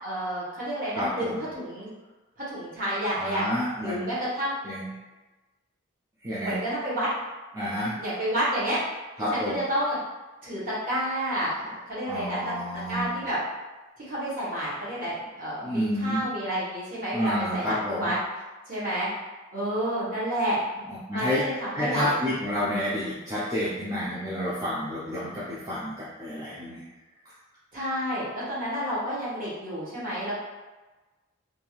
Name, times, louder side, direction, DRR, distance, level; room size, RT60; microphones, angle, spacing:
voice 1, 0.0-1.9 2.4-3.4 3.8-4.5 6.4-7.1 8.0-8.8 9.3-10.0 10.4-12.5 12.9-13.4 14.1-18.1 18.7-19.1 19.5-20.6 21.1-22.2 27.7-30.3, equal, 40° right, -8 dB, 1.0 m, -30 dB
voice 2, 0.9-1.4 3.2-4.0 4.6-4.9 6.2-6.6 7.5-8.0 9.2-9.5 12.1-13.2 15.6-16.2 17.1-18.1 20.9-21.4 21.7-26.8, equal, 15° right, -10 dB, 0.4 m, -29 dB
2.7 x 2.3 x 3.0 m, 1.2 s
head